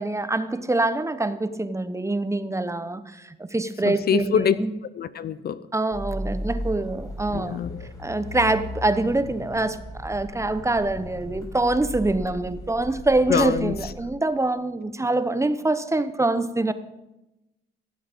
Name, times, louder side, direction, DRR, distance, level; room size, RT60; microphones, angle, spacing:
voice 1, 0.0-4.8 5.7-7.6 8.0-16.7, right 2 dB, 15° right, 0.9 m, -25 dB
voice 2, 3.8-4.6 5.0-5.6 7.3-7.9 13.3-13.7, left 8 dB, 55° left, 0.6 m, -24 dB
sound 1, 5.9-13.9, equal, 20° left, 3.8 m, -36 dB
16.0 x 7.7 x 5.3 m
supercardioid pair, 60°, 20 cm